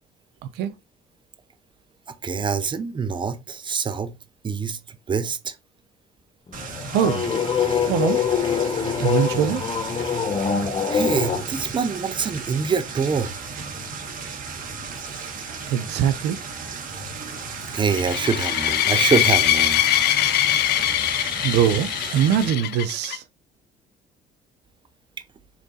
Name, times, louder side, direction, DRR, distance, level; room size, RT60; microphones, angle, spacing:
voice 1, 2.1-4.1 4.4-5.6 10.9-13.3 17.7-19.8, right 5 dB, 30° right, 0.9 m, -25 dB
sound 1, 6.5-11.4, left 7 dB, 30° left, 1.2 m, -24 dB
sound 2, 6.5-22.5, right 4 dB, 55° right, 1.7 m, -35 dB
voice 2, 6.9-7.2 7.8-8.2 9.0-9.6 15.7-16.4 21.4-23.2, right 9 dB, 85° right, 0.8 m, -22 dB
sound 3, 17.9-23.2, left 13 dB, 75° left, 0.7 m, -22 dB
6.0 x 3.9 x 4.1 m
cardioid pair, 110°, 17 cm